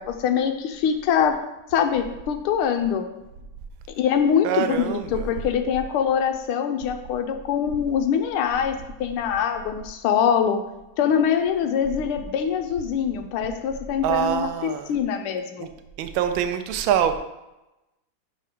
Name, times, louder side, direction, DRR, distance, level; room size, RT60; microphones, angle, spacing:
voice 1, 0.0-1.4 1.7-3.1 4.0-10.6 11.0-15.7, left 8 dB, 80° left, 6 dB, 1.6 m, -23 dB
voice 2, 4.4-5.3 14.0-14.9 15.6-15.7 16.0-17.2, right 9 dB, 75° right, 8 dB, 1.4 m, -24 dB
6.0 x 5.5 x 5.0 m, 0.96 s
omnidirectional pair, 2.4 m